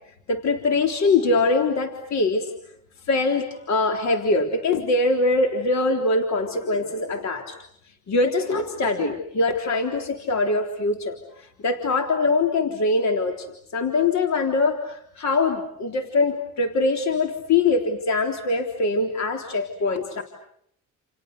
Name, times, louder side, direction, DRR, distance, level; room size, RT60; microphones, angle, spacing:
voice 1, 0.3-2.5 3.1-7.6 8.1-13.5 13.7-20.2, left 3 dB, 65° left, 5 dB, 3.7 m, -23 dB
30.0 x 30.0 x 6.7 m, 0.69 s
cardioid pair, 90°, 30 cm